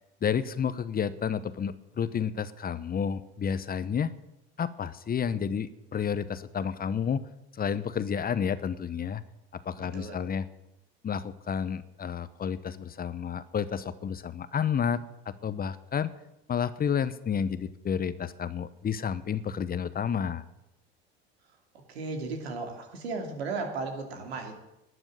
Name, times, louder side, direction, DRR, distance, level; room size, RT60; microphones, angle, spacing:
voice 1, 0.2-4.1 4.6-7.2 7.5-9.2 9.5-10.5 11.0-16.1 16.5-20.4, left 7 dB, 30° left, 15 dB, 0.9 m, -30 dB
voice 2, 9.8-10.2 21.9-24.6, right 3 dB, 85° right, 4 dB, 2.7 m, -35 dB
12.0 x 8.0 x 9.4 m, 0.91 s
hypercardioid pair, 75°, 31 cm